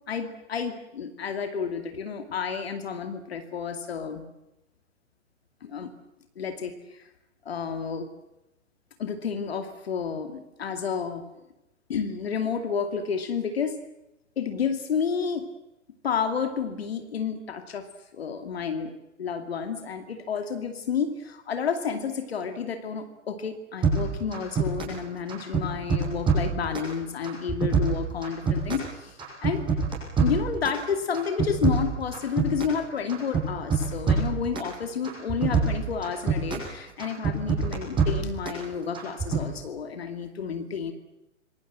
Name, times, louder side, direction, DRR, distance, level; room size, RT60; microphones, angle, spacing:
voice 1, 0.1-4.3 5.6-5.9 6.4-7.1 7.4-8.1 9.0-11.2 11.9-13.8 14.4-15.5 16.0-18.9 19.2-29.7 30.2-40.9, left 6 dB, 50° left, 7 dB, 2.6 m, -30 dB
sound 1, 23.8-25.0 25.3-26.9 27.2-28.9 29.2-30.8 31.1-32.8 33.1-34.7 35.0-36.7 37.0-38.6 38.9-39.4, right 4 dB, 10° right, 7.4 m, -25 dB
26.5 x 23.0 x 7.7 m, 0.94 s
figure-of-eight pair, 125°, 39 cm